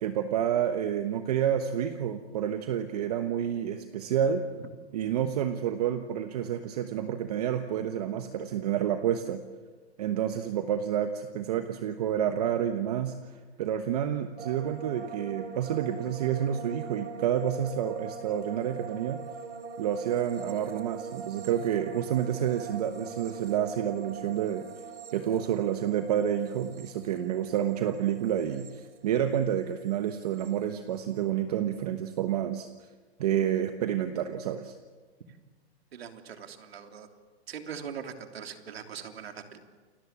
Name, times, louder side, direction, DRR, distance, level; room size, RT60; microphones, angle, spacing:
voice 1, 0.0-4.4 4.9-9.4 10.0-13.1 13.6-19.2 19.8-24.6 25.1-32.7 33.2-34.7, right 9 dB, 35° right, 7 dB, 1.2 m, -29 dB
sound 1, 14.4-29.6 29.9-30.5, right 6 dB, 85° right, 4.3 m, -43 dB
voice 2, 35.9-37.1 37.5-39.6, right 7 dB, 65° right, 5 dB, 3.3 m, -41 dB
29.0 x 23.5 x 7.4 m, 1.4 s
hypercardioid pair, 170°, 33 cm